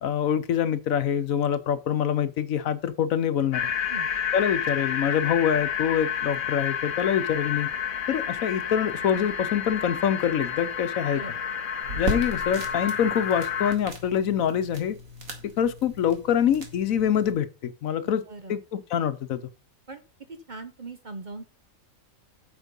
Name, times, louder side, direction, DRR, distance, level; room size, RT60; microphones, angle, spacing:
voice 1, 0.0-3.7 4.3-7.7 8.1-11.2 12.0-15.0 15.6-18.2 18.5-19.4, left 9 dB, 75° left, 1.2 m, -25 dB
sound 1, 3.5-13.8, left 8 dB, 45° left, 0.8 m, -30 dB
sound 2, 11.8-17.3, right 1 dB, 75° right, 2.2 m, -37 dB
voice 2, 18.0-18.6 19.9-20.0 20.3-21.4, right 3 dB, 40° right, 0.8 m, -40 dB
8.1 x 6.7 x 5.4 m
omnidirectional pair, 1.4 m